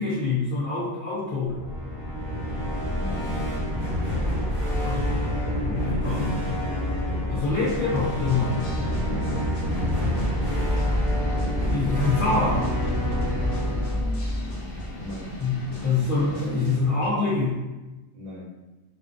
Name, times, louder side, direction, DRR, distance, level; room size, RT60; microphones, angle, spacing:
voice 1, 0.0-1.6 4.8-5.2 5.6-6.4 7.3-8.6 11.7-12.7 15.4-17.6, left 3 dB, 55° left, -9 dB, 0.6 m, -25 dB
evil villian theme, 1.5-15.5, equal, 25° right, 0.4 m, -27 dB
voice 2, 3.0-3.4 7.0-7.3 8.9-9.3 14.9-15.4 18.1-18.5, left 2 dB, 75° right, -7 dB, 0.9 m, -40 dB
sound 1, 7.4-17.1, equal, 85° left, 1.1 m, -38 dB
2.5 x 2.2 x 2.4 m, 1.1 s
omnidirectional pair, 1.3 m